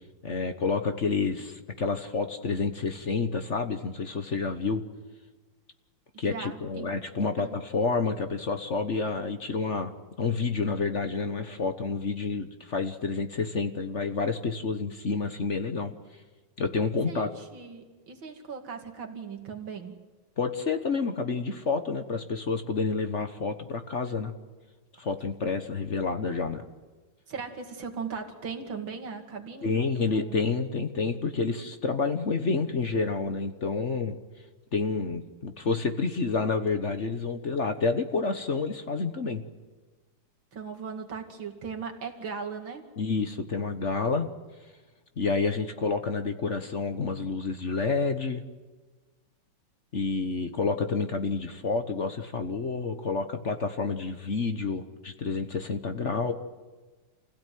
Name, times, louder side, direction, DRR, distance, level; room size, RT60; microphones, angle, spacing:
voice 1, 0.2-4.8 6.2-9.9 10.2-15.9 16.6-17.3 20.4-24.3 25.0-26.6 29.6-34.2 34.7-39.4 43.0-44.3 45.2-48.4 49.9-56.3, left 4 dB, 40° left, 8 dB, 1.3 m, -29 dB
voice 2, 6.1-6.9 7.4-7.6 17.1-20.0 27.3-30.5 40.5-42.9, right 5 dB, 80° right, 4 dB, 3.1 m, -38 dB
28.0 x 16.5 x 9.3 m, 1.3 s
omnidirectional pair, 2.1 m